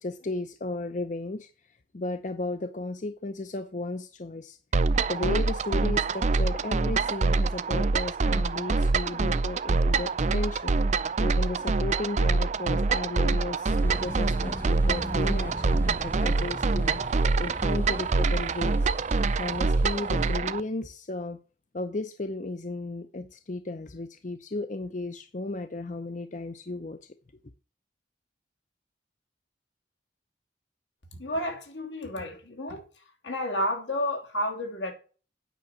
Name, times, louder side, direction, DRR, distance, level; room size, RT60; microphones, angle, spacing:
voice 1, 0.0-4.6 5.1-18.9 19.4-21.4 21.7-27.1, left 2 dB, 40° left, 0.6 m, -35 dB
sound 1, 4.7-20.6, right 3 dB, 40° right, 0.4 m, -25 dB
sound 2, 13.7-20.4, equal, 10° left, 0.8 m, -39 dB
voice 2, 31.1-32.8 33.2-34.9, left 1 dB, 80° left, 2.9 m, -31 dB
9.3 x 5.9 x 8.2 m
head